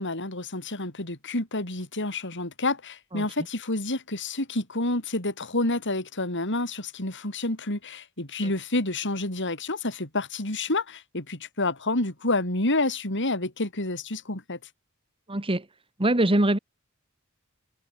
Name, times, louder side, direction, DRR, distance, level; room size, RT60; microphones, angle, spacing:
voice 1, 0.0-14.6, left 2 dB, 55° left, 5.8 m, -29 dB
voice 2, 15.3-15.6 16.0-16.6, right 1 dB, 25° right, 1.7 m, -22 dB
head